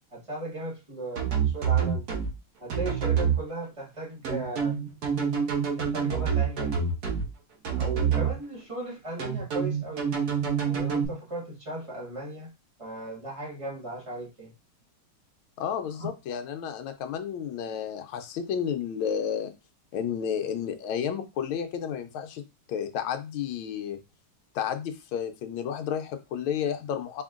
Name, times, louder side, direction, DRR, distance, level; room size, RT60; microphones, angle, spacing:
voice 1, 0.1-2.0 2.6-4.8 5.8-6.7 7.7-10.1 10.6-12.5 12.8-14.5 16.0-16.1, right 2 dB, 20° right, -3 dB, 1.0 m, -37 dB
sound 1, 1.2-2.3 2.7-3.4 4.2-7.2 7.6-8.3 9.2-11.0, right 7 dB, 55° right, 1.3 m, -26 dB
voice 2, 15.6-19.5 19.9-22.4 22.7-24.0 24.5-27.2, left 8 dB, 80° left, 6 dB, 1.4 m, -31 dB
4.3 x 3.6 x 2.4 m, 0.26 s
omnidirectional pair, 2.3 m